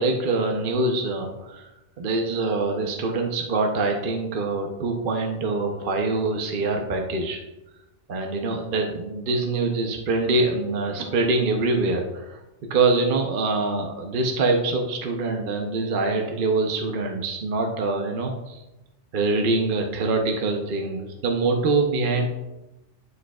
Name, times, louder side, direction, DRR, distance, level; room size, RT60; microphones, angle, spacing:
voice 1, 0.0-1.7 2.0-7.4 8.1-12.4 12.7-18.6 19.1-22.3, right 3 dB, 50° right, 3 dB, 0.9 m, -24 dB
12.0 x 5.1 x 2.3 m, 0.98 s
omnidirectional pair, 1.2 m